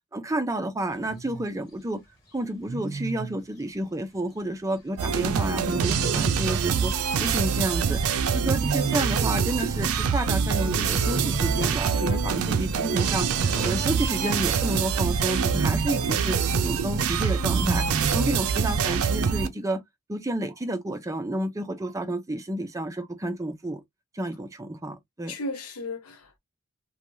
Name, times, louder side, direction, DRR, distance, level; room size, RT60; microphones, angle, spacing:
voice 1, 0.1-2.0 2.3-6.9 7.2-8.0 8.3-13.3 13.6-16.4 16.6-17.8 18.1-19.8 20.1-23.8 24.1-25.3, right 1 dB, 15° right, 0.5 m, -30 dB
Wild animals, 1.1-1.4 2.7-3.4 5.7-6.6 8.4-9.5 11.0-11.9 13.5-14.6 15.3-16.2 17.5-18.5, right 3 dB, 25° left, 1.5 m, -33 dB
sound 1, 5.0-19.5, right 6 dB, 80° right, 0.4 m, -25 dB
voice 2, 8.2-8.7 11.9-12.5 18.0-18.5 25.3-26.4, left 2 dB, 85° left, 0.9 m, -36 dB
3.1 x 2.2 x 2.6 m
head